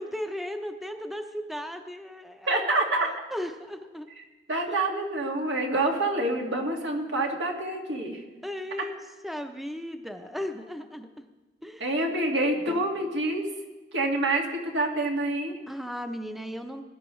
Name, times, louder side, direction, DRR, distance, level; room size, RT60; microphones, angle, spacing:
voice 1, 0.0-2.7 3.0-4.1 4.7-4.8 8.4-9.0 9.2-11.1 11.6-12.1 12.7-12.8 15.7-16.8, equal, ahead, 6 dB, 0.6 m, -36 dB
voice 2, 2.5-3.1 4.5-8.2 11.8-13.5 13.9-15.6, right 2 dB, 85° right, 0 dB, 1.9 m, -27 dB
20.0 x 10.5 x 3.2 m, 1.2 s
head